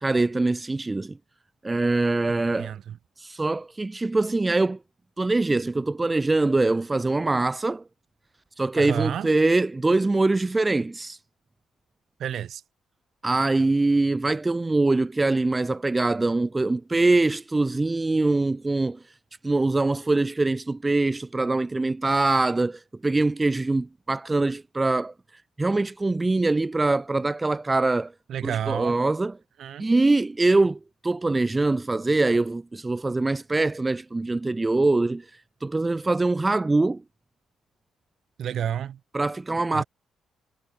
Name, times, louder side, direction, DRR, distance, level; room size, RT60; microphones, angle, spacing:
voice 1, 0.0-1.2 1.6-2.7 3.2-4.8 5.2-7.8 8.6-11.2 13.2-19.0 19.4-25.1 25.6-28.1 28.4-29.3 29.8-35.2 35.6-37.0 39.1-39.8, right 2 dB, 15° right, 0.6 m, -23 dB
voice 2, 2.5-3.0 8.8-9.3 12.2-12.6 28.3-29.0 29.6-29.8 38.4-39.0 39.7-39.8, right 9 dB, 60° right, 3.4 m, -30 dB
cardioid pair, 135°, 0 cm